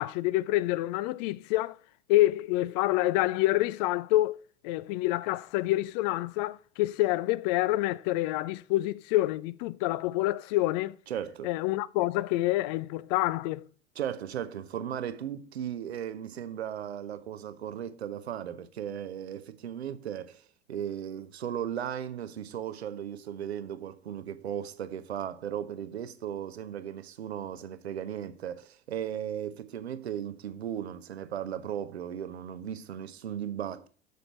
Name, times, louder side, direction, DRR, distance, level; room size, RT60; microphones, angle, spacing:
voice 1, 0.0-1.8 2.1-4.4 4.6-10.9 11.4-13.6, left 17 dB, 40° left, 0.4 m, -27 dB
voice 2, 11.1-11.5 14.0-33.9, right 9 dB, 70° right, 0.8 m, -36 dB
6.8 x 6.5 x 4.5 m
figure-of-eight pair, 80°, 33 cm